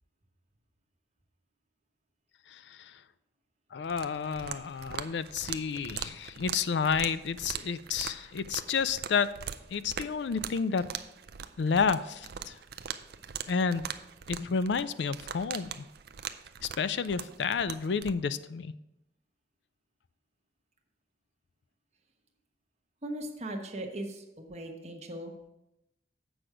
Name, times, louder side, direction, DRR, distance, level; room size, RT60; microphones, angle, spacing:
voice 1, 2.5-2.9 3.7-9.3 9.7-10.9 11.6-12.5 13.5-13.8 14.3-15.9 16.8-18.7, left 5 dB, 70° left, 14 dB, 0.4 m, -30 dB
sound 1, 3.8-18.1, right 8 dB, 55° right, 0.4 m, -42 dB
voice 2, 23.0-25.3, right 1 dB, 35° right, 2 dB, 1.1 m, -38 dB
7.9 x 6.1 x 4.8 m, 0.91 s
head